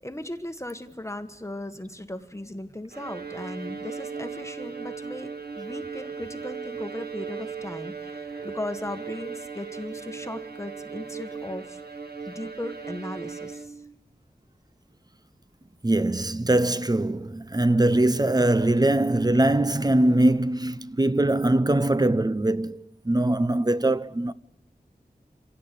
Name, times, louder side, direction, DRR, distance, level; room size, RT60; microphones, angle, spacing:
voice 1, 0.0-11.8 12.3-13.8, left 1 dB, 15° left, 1.3 m, -37 dB
Bowed string instrument, 2.9-13.9, right 5 dB, 80° right, 1.8 m, -37 dB
voice 2, 15.8-24.3, right 1 dB, 25° right, 0.8 m, -22 dB
26.0 x 17.0 x 8.4 m
wide cardioid pair, 65°, 16 cm